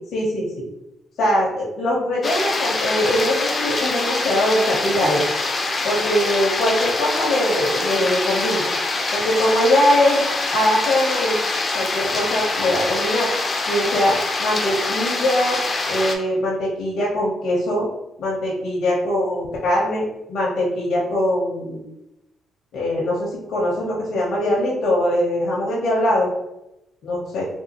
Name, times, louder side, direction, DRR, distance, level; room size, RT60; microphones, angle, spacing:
voice 1, 0.1-0.6 1.2-5.2 5.8-8.7 9.1-10.2 10.5-11.3 11.7-13.3 13.7-15.6 15.9-17.9 18.2-21.9 22.7-26.3 27.0-27.5, left 1 dB, 75° left, -5 dB, 0.9 m, -21 dB
sound 1, 2.2-16.2, left 3 dB, 35° left, 0.5 m, -24 dB
3.6 x 2.4 x 2.9 m, 0.90 s
cardioid pair, 90°, 0 cm